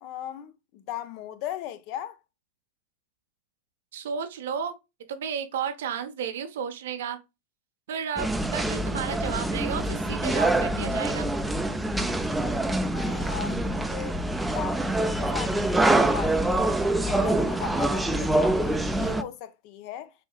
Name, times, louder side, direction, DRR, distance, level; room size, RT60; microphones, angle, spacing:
voice 1, 0.0-2.2 12.8-16.7 17.0-20.1, left 11 dB, 55° left, 0.5 m, -38 dB
voice 2, 3.9-4.7 5.1-7.2 7.9-11.3, right 7 dB, 75° right, 0.6 m, -32 dB
sound 1, 8.2-19.2, right 1 dB, 5° right, 0.4 m, -25 dB
4.2 x 2.7 x 2.2 m
hypercardioid pair, 110°, 0 cm